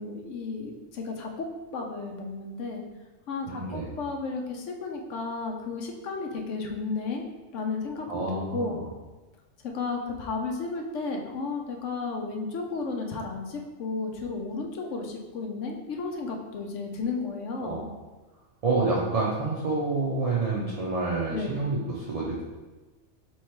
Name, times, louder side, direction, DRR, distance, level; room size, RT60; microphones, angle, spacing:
voice 1, 0.0-1.5 1.7-2.8 3.3-7.2 7.5-8.1 8.3-8.8 9.6-17.9 21.3-21.6, left 4 dB, 70° left, 2 dB, 1.0 m, -33 dB
voice 2, 3.5-3.9 8.1-8.8 17.6-17.8 18.6-22.4, right 3 dB, 40° right, -5 dB, 0.6 m, -28 dB
3.5 x 3.1 x 4.5 m, 1.2 s
omnidirectional pair, 1.3 m